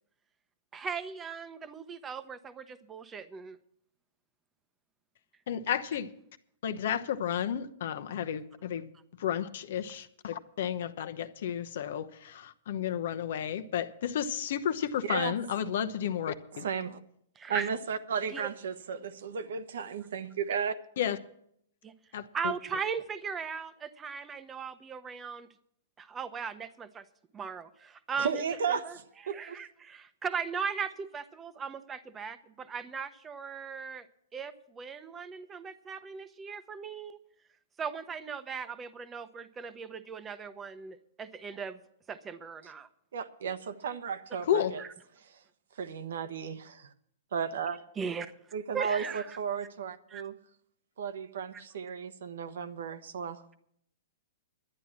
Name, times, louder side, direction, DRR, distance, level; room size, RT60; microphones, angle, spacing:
voice 1, 0.7-3.6 8.1-8.2 17.4-17.7 18.3-18.5 21.8-21.9 22.3-25.5 26.0-27.0 27.3-28.4 28.8-29.0 29.3-34.1 34.3-37.2 37.8-41.8 42.1-42.9 44.8-44.9 48.0-48.3 48.7-49.3 50.1-50.2, right 6 dB, 15° right, 0.9 m, -38 dB
voice 2, 5.5-6.1 6.6-8.9 9.2-16.6 21.0-21.2 22.1-22.5 44.4-44.7, left 9 dB, 65° left, 0.9 m, -32 dB
voice 3, 15.0-15.3 16.6-17.0 17.5-20.8 28.2-29.6 43.1-44.8 45.2-45.4 45.8-46.9 47.3-47.8 48.5-50.3 51.0-53.4, right 6 dB, 75° right, 1.1 m, -34 dB
11.0 x 9.7 x 7.3 m
hypercardioid pair, 135°, 0 cm